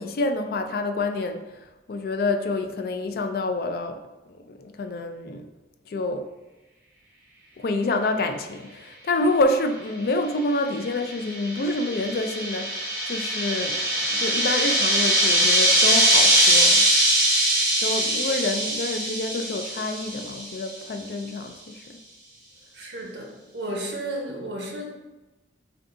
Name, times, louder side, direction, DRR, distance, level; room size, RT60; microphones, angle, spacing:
voice 1, 0.0-1.4 1.9-4.0 4.5-5.5 5.9-6.3 7.6-16.8 17.8-21.6 21.9-22.0, left 2 dB, 55° left, 6 dB, 0.3 m, -27 dB
sound 1, 10.8-20.6, right 1 dB, 10° right, 1.3 m, -22 dB
voice 2, 22.7-24.8, right 1 dB, 70° right, 0 dB, 0.6 m, -33 dB
3.6 x 2.3 x 3.7 m, 1.1 s
head